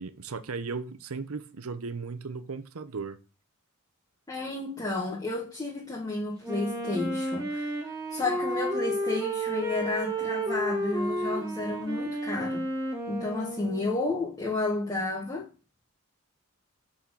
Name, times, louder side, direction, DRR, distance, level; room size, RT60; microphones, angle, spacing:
voice 1, 0.0-3.2, right 4 dB, 80° right, 0.7 m, -36 dB
voice 2, 4.3-7.8 8.1-12.7 13.1-15.5, left 2 dB, 20° left, 1.3 m, -31 dB
Wind instrument woodwind instrument, 6.4-14.2, right 1 dB, 15° right, 1.8 m, -32 dB
5.7 x 4.3 x 6.3 m
head